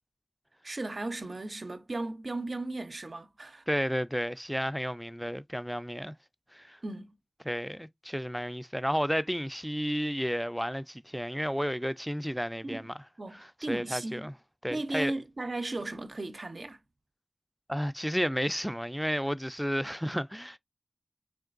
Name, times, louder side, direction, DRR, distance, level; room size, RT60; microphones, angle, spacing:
voice 1, 0.6-3.7 6.8-7.2 12.6-12.9 13.2-14.3 14.7-16.8, right 2 dB, 85° right, 0.5 m, -36 dB
voice 2, 3.7-6.1 6.5-6.8 7.5-12.9 13.3-14.3 14.6-15.1 17.7-20.6, equal, ahead, 0.3 m, -32 dB
4.4 x 3.2 x 2.4 m
wide cardioid pair, 45°, 0 cm